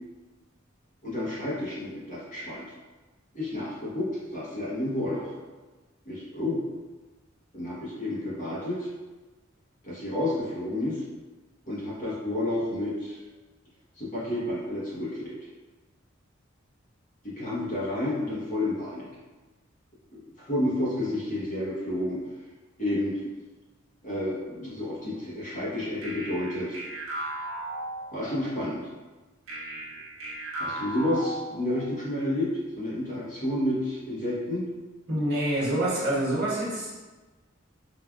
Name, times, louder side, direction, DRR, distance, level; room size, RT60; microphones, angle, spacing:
voice 1, 1.0-2.7 3.3-5.3 6.0-6.6 7.5-8.9 9.8-11.0 11.6-13.2 14.0-15.3 17.2-19.1 20.1-22.2 22.8-23.2 24.0-26.8 28.1-28.9 30.6-34.7, left 1 dB, 40° left, -8 dB, 1.0 m, -30 dB
sound 1, 26.0-28.5 29.5-32.0, right 1 dB, 85° right, 0.6 m, -36 dB
voice 2, 35.1-36.9, right 1 dB, 55° right, -7 dB, 1.1 m, -26 dB
3.2 x 2.3 x 2.3 m, 1.2 s
head